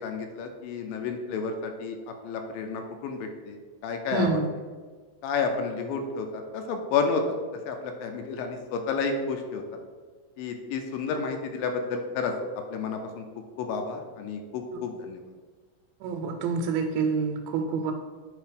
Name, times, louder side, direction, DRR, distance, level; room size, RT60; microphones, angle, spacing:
voice 1, 0.0-2.0 2.2-3.6 3.8-4.4 5.2-7.4 7.7-9.6 10.4-12.3 12.7-13.2 13.6-15.2, left 5 dB, 80° left, 5 dB, 2.3 m, -30 dB
voice 2, 4.1-4.5 14.7-14.8 16.0-17.9, right 4 dB, 90° right, 3 dB, 2.4 m, -27 dB
7.9 x 2.8 x 5.0 m, 1.5 s
omnidirectional pair, 4.2 m